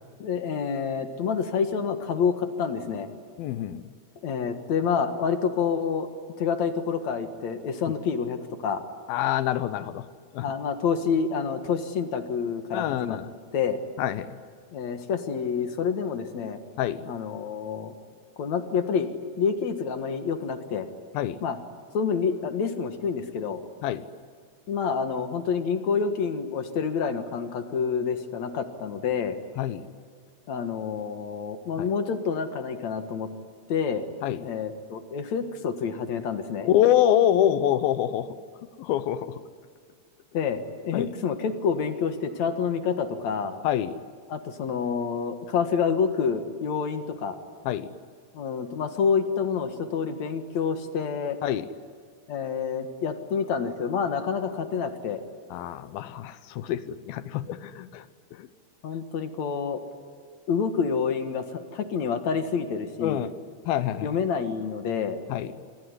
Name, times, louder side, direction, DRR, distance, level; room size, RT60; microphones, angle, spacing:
voice 1, 0.2-3.1 4.2-6.1 6.4-8.9 10.4-13.2 13.5-13.8 14.7-16.6 17.1-17.9 18.4-19.1 19.4-20.9 21.4-21.6 21.9-23.6 24.7-29.4 30.5-33.3 33.7-34.1 34.4-36.7 40.3-43.6 44.3-47.4 48.3-51.4 52.3-55.2 58.8-59.8 60.5-63.2 64.0-65.2, left 6 dB, 55° left, 8 dB, 2.5 m, -28 dB
voice 2, 3.4-3.9 9.1-10.1 10.3-10.5 12.7-13.3 14.0-14.3 16.8-17.1 21.1-21.4 23.8-24.1 29.6-29.9 31.8-31.9 34.2-34.4 36.6-38.3 38.8-39.4 40.9-41.1 43.6-44.0 47.7-47.9 51.4-51.7 55.5-58.1 58.3-58.5 63.0-63.3 63.7-64.1 65.3-65.5, left 11 dB, 80° left, 14 dB, 2.7 m, -26 dB
26.5 x 22.0 x 9.7 m, 2.1 s
omnidirectional pair, 4.3 m